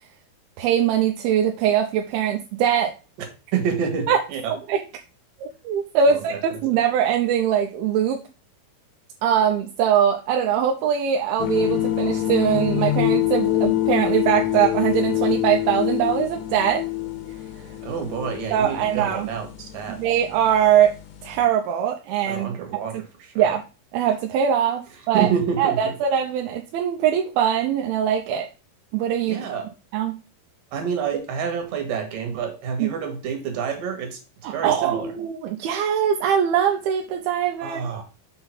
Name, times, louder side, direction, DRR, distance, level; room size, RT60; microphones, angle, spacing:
voice 1, 0.6-2.9 4.1-4.2 4.5-4.8 5.6-8.2 9.2-16.8 18.5-19.3 19.9-20.9 21.2-22.5 23.4-23.6 23.9-25.3 25.6-28.5 28.9-29.4 29.9-30.2 32.8-32.9 34.4-37.8, right 9 dB, 80° right, 2 dB, 2.4 m, -22 dB
voice 2, 3.5-4.5 6.1-6.4 17.8-20.0 22.3-23.5 25.1-26.0 29.3-29.7 30.7-34.2 34.5-35.1 37.6-38.0, right 7 dB, 60° right, 4 dB, 3.1 m, -28 dB
sound 1, 11.4-21.5, left 13 dB, 85° left, 3.0 m, -26 dB
6.7 x 3.8 x 5.8 m, 0.32 s
omnidirectional pair, 4.7 m